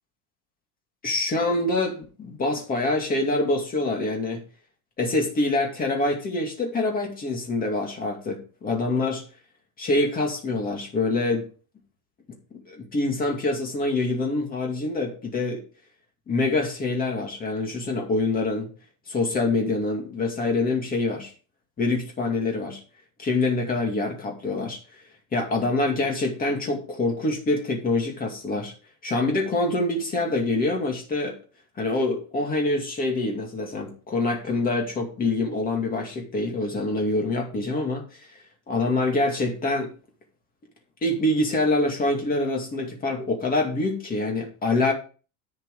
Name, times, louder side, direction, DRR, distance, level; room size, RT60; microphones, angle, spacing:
voice 1, 1.0-4.4 5.0-9.2 9.8-11.5 12.5-15.6 16.3-18.7 19.1-21.3 21.8-22.8 23.2-24.8 25.3-28.7 29.0-31.4 31.8-38.0 38.7-39.9 41.0-44.9, left 2 dB, 20° left, 2.4 m, -25 dB
10.5 x 6.7 x 4.8 m
cardioid pair, 165°, 43 cm